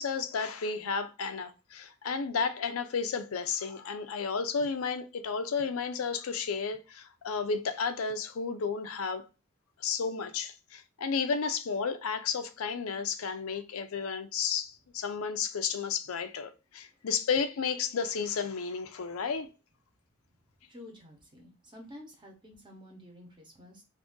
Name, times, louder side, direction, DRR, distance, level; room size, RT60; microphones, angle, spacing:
voice 1, 0.0-9.2 9.8-19.5, left 5 dB, 85° left, 0.5 m, -32 dB
voice 2, 20.7-23.8, left 1 dB, 20° right, 0.9 m, -50 dB
2.6 x 2.6 x 3.6 m
head